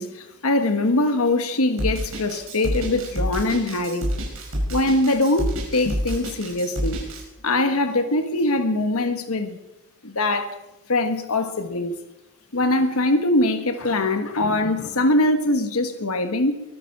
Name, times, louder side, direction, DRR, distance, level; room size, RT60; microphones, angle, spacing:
voice 1, 0.0-4.1 4.7-7.0 7.4-9.6 10.0-10.5 10.9-11.9 12.5-16.6, left 2 dB, 75° left, 1.4 m, -22 dB
Drum kit, 1.8-7.2, equal, 65° right, 5.5 m, -27 dB
22.5 x 10.0 x 5.9 m
head